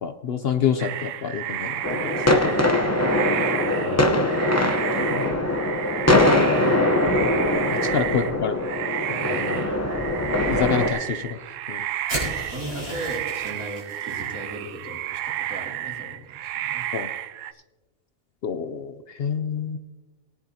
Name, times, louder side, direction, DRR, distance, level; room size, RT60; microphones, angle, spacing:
voice 1, 0.0-2.0 2.7-2.8 5.1-5.3 7.9-8.5 9.3-9.6 10.5-11.4 11.7-11.8 16.9-17.1 18.4-19.8, left 7 dB, 60° left, 8 dB, 0.6 m, -27 dB
sound 1, 0.8-17.5, right 12 dB, 70° right, 0.9 m, -31 dB
sound 2, 1.8-10.9, left 1 dB, 15° left, 0.6 m, -22 dB
voice 2, 3.7-4.2 7.8-8.3 9.1-9.6 12.1-16.8, right 2 dB, 90° right, -1 dB, 2.9 m, -38 dB
sound 3, 12.1-14.3, right 1 dB, 25° right, 5.3 m, -33 dB
19.0 x 10.5 x 2.8 m, 1.1 s
omnidirectional pair, 1.5 m